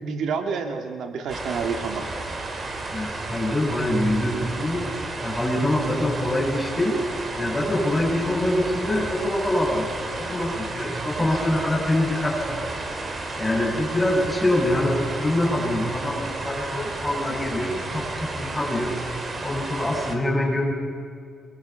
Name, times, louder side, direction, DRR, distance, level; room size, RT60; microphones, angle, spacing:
voice 1, 0.0-2.1, right 5 dB, 70° right, 5 dB, 2.3 m, -28 dB
sound 1, 1.3-20.2, right 2 dB, 30° right, 3.4 m, -32 dB
voice 2, 2.9-4.8 5.2-7.0 7.4-12.6 13.3-19.0 19.4-20.7, left 1 dB, 10° left, -1 dB, 6.7 m, -24 dB
25.0 x 23.0 x 5.8 m, 2.3 s
cardioid pair, 90°, 0 cm